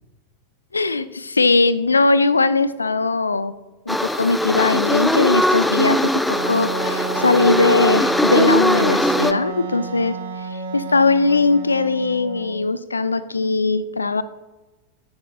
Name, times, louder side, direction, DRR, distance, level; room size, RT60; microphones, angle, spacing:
voice 1, 0.7-3.5 3.9-6.0 6.3-10.2 10.5-14.2, left 3 dB, 80° left, 15 dB, 0.4 m, -19 dB
sound 1, 3.9-9.3, equal, 5° left, 0.5 m, -20 dB
Wind instrument woodwind instrument, 6.3-12.8, right 4 dB, 65° right, 1.2 m, -31 dB
13.0 x 10.5 x 2.2 m, 1.1 s
figure-of-eight pair, 90°, 0 cm